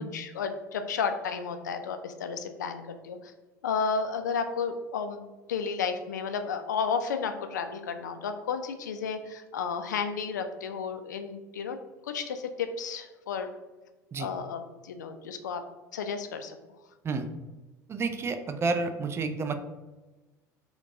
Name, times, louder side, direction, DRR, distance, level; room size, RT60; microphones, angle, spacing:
voice 1, 0.0-3.3 3.6-5.2 5.5-11.8 12.0-13.5 14.2-15.6 15.9-16.6, left 5 dB, 75° left, 7 dB, 0.4 m, -32 dB
voice 2, 17.9-19.5, right 4 dB, 25° right, 8 dB, 0.4 m, -30 dB
4.5 x 2.3 x 3.6 m, 1.2 s
figure-of-eight pair, 70°, 10 cm